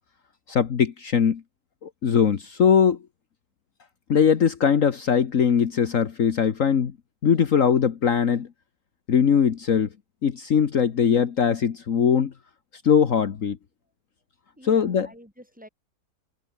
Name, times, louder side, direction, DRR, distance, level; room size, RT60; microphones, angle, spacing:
voice 1, 0.5-1.4 1.8-3.0 4.1-6.9 7.2-8.5 9.1-9.9 10.2-12.3 12.8-13.6 14.7-15.1, left 7 dB, 55° left, 1.6 m, -21 dB
voice 2, 14.6-15.7, equal, 5° right, 7.0 m, -47 dB
open air
omnidirectional pair, 1.6 m